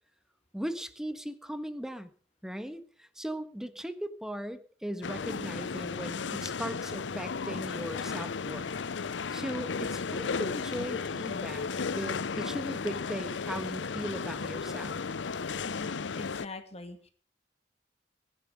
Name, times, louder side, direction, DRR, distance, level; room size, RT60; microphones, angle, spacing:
voice 1, 0.5-2.1 2.4-8.7 9.3-15.0, equal, 5° right, 11 dB, 1.4 m, -38 dB
sound 1, 5.0-16.5, left 5 dB, 85° left, 0.6 m, -34 dB
voice 2, 15.6-17.1, left 2 dB, 35° left, 7 dB, 2.7 m, -44 dB
22.5 x 11.0 x 5.2 m, 0.43 s
head